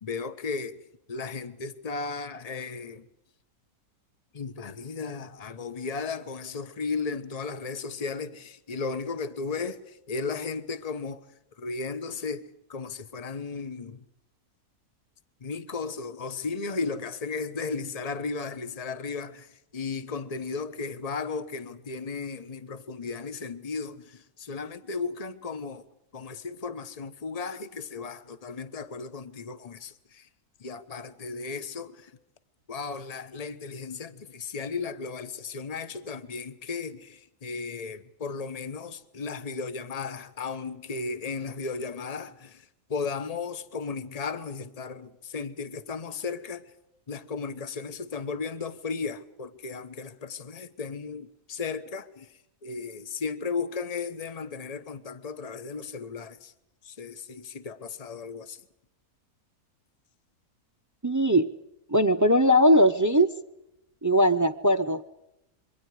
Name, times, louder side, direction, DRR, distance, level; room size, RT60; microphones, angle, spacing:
voice 1, 0.0-0.8 1.1-3.1 4.3-11.2 11.6-12.4 12.7-14.0 15.4-25.8 26.1-30.3 30.6-32.1 32.7-46.6 47.1-56.5 56.8-58.6, left 4 dB, 25° left, 1.1 m, -35 dB
voice 2, 61.0-61.5 61.9-63.3 64.0-65.0, equal, 25° right, 0.4 m, -20 dB
26.5 x 23.5 x 4.9 m
omnidirectional pair, 1.7 m